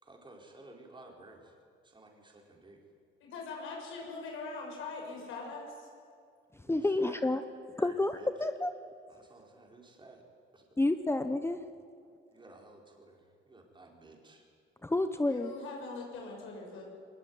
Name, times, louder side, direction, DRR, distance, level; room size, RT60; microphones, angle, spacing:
voice 1, 0.0-1.6 1.8-2.8 6.6-7.3 7.8-8.5 9.1-10.2 10.5-10.7 12.3-14.5, right 2 dB, 25° right, 1 dB, 4.7 m, -54 dB
voice 2, 3.2-5.9 15.2-16.8, left 3 dB, 90° left, 0 dB, 6.4 m, -42 dB
voice 3, 6.7-7.4 7.8-8.7 10.8-11.6 14.8-15.5, left 2 dB, 10° left, 10 dB, 1.0 m, -29 dB
21.5 x 20.5 x 9.6 m, 2.4 s
cardioid pair, 90°, 20 cm